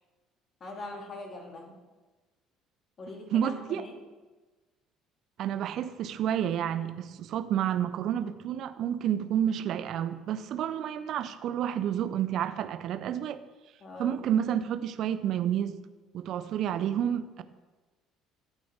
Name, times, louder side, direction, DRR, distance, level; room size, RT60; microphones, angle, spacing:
voice 1, 0.6-1.8 3.0-4.0 13.8-14.2, left 2 dB, 35° left, 2 dB, 2.6 m, -42 dB
voice 2, 3.3-3.8 5.4-13.4 14.0-15.8 16.1-17.4, right 10 dB, 50° right, 12 dB, 0.8 m, -30 dB
22.5 x 9.0 x 3.7 m, 1.2 s
figure-of-eight pair, 55°, 0 cm